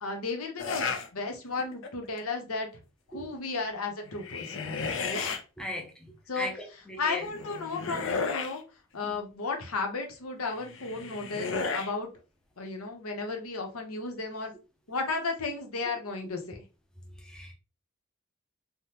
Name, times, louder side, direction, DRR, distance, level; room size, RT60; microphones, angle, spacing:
voice 1, 0.0-2.8 3.1-4.6 5.0-5.2 6.3-6.5 7.0-8.6 8.9-12.1 12.6-14.5 14.9-16.6, left 4 dB, 90° left, 3 dB, 0.8 m, -34 dB
sound 1, 0.6-1.1 1.6-2.0 4.1-5.4 7.1-8.6 10.6-11.9, left 4 dB, 65° left, 0.5 m, -33 dB
voice 2, 5.6-5.9 6.3-7.2 9.0-9.2 17.3-17.5, equal, 5° left, 1 dB, 0.4 m, -37 dB
3.4 x 2.1 x 2.8 m, 0.31 s
head